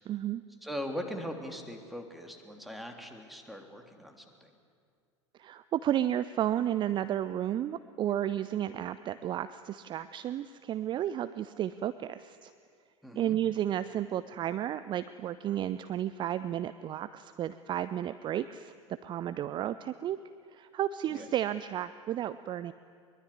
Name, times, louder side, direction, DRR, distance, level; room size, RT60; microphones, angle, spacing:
voice 1, 0.1-0.4 5.4-12.5 13.1-18.7 19.0-20.2 20.5-22.7, right 11 dB, 30° right, 14 dB, 0.6 m, -32 dB
voice 2, 0.6-4.5 13.0-13.4 21.1-21.3, equal, ahead, 3 dB, 3.4 m, -40 dB
22.5 x 22.5 x 9.7 m, 2.2 s
figure-of-eight pair, 80°, 16 cm